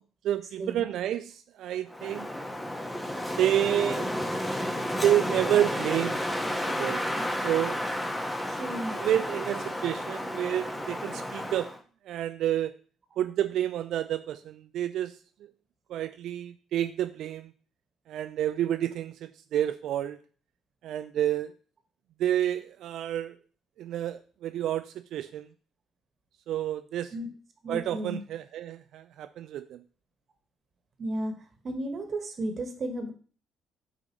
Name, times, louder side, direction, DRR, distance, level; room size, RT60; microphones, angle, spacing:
voice 1, 0.2-2.3 3.4-4.1 4.9-6.2 6.7-7.0 7.4-7.8 8.9-11.7 12.1-12.7 13.2-15.1 15.9-17.5 18.1-20.2 20.8-21.5 22.2-23.4 23.8-25.5 26.5-27.1 27.7-29.8, right 11 dB, 60° right, 10 dB, 0.4 m, -29 dB
Wind, 1.9-11.8, left 1 dB, 10° left, 1.3 m, -32 dB
voice 2, 8.5-9.0 27.1-27.3 27.6-28.2 31.0-31.3 31.6-33.1, right 1 dB, 45° right, 6 dB, 1.5 m, -33 dB
8.4 x 4.9 x 3.1 m, 0.40 s
figure-of-eight pair, 45°, 0 cm